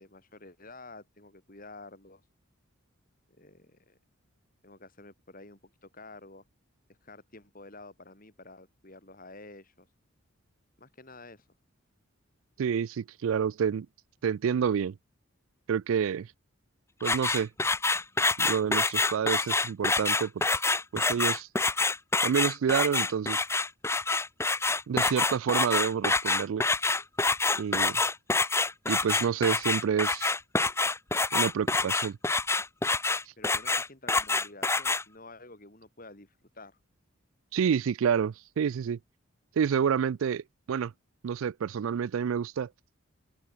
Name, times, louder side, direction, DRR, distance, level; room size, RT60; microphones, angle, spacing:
voice 1, 0.0-2.2 3.3-4.0 4.6-6.4 7.0-9.9 10.8-11.5 26.2-26.3 33.4-36.8, left 2 dB, 40° left, 5.8 m, -50 dB
voice 2, 12.6-13.9 14.2-14.9 15.7-16.3 17.0-17.5 18.4-20.4 20.9-21.5 22.2-23.4 24.9-26.6 27.6-28.0 28.9-30.3 31.3-32.2 37.5-39.0 39.6-40.9 41.2-42.7, right 7 dB, 70° right, 0.3 m, -28 dB
sound 1, 17.0-35.0, left 3 dB, 10° left, 1.0 m, -27 dB
open air
head